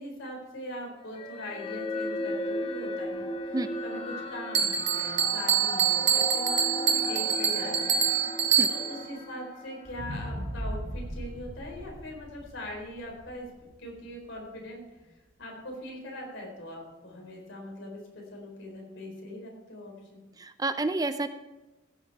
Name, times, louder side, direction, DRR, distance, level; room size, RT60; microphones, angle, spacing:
voice 1, 0.0-4.0 4.3-8.0 8.7-13.5 13.8-14.8 15.4-20.2, left 1 dB, 80° left, 0 dB, 4.1 m, -41 dB
sound 1, 1.1-10.7, left 1 dB, 30° left, 1.0 m, -36 dB
Bell, 4.5-9.1, right 8 dB, 65° right, 0.9 m, -26 dB
sound 2, 9.8-14.1 14.6-14.7, equal, 45° right, 1.8 m, -38 dB
voice 2, 20.4-21.3, right 2 dB, 20° right, 10 dB, 0.4 m, -29 dB
16.0 x 7.4 x 4.6 m, 1.1 s
head